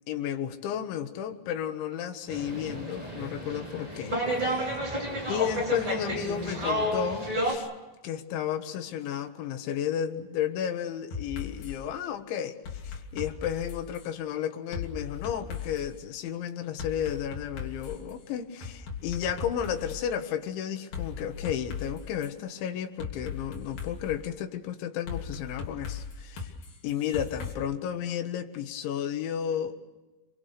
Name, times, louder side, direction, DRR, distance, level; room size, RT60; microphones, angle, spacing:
voice 1, 0.1-4.8 5.3-7.7 8.0-26.5 26.8-29.8, left 9 dB, 80° left, 3.9 m, -33 dB
sound 1, 2.3-7.5, equal, 10° right, 3.5 m, -31 dB
sound 2, 11.1-11.8 12.6-14.1 14.7-15.9 16.8-18.1 18.6-20.0 20.9-22.3 23.0-24.2 25.1-27.5, left 6 dB, 50° left, 4.4 m, -38 dB
29.0 x 23.5 x 6.8 m
omnidirectional pair, 5.3 m